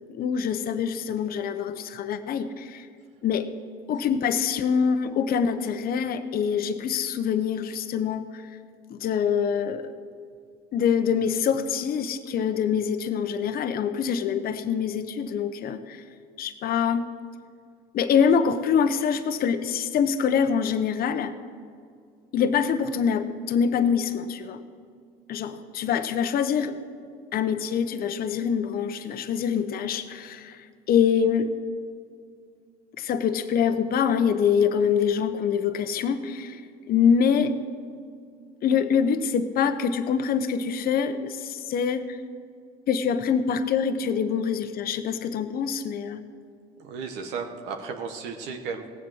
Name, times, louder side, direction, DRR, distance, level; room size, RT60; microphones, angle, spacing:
voice 1, 0.1-2.9 3.2-3.5 3.9-8.4 8.9-9.9 10.7-16.0 16.4-17.1 17.9-21.4 22.3-24.6 25.3-26.8 27.3-31.5 33.0-36.6 36.9-37.6 38.6-42.2 42.9-46.2, left 7 dB, 55° left, 9 dB, 0.8 m, -25 dB
voice 2, 46.8-48.9, right 5 dB, 85° right, 5 dB, 1.2 m, -34 dB
17.0 x 7.6 x 6.4 m, 2.2 s
supercardioid pair, 90°, 18 cm